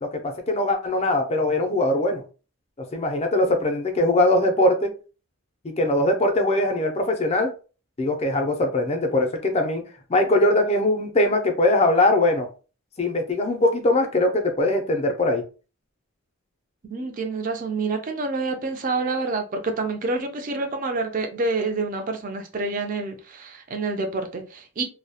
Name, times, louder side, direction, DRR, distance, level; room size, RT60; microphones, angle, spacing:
voice 1, 0.0-2.2 2.9-4.9 5.6-7.5 8.0-9.8 10.1-12.5 13.0-15.4, left 1 dB, 30° left, 0.4 m, -21 dB
voice 2, 16.9-24.8, right 3 dB, 35° right, 0.4 m, -27 dB
2.2 x 2.0 x 2.7 m
head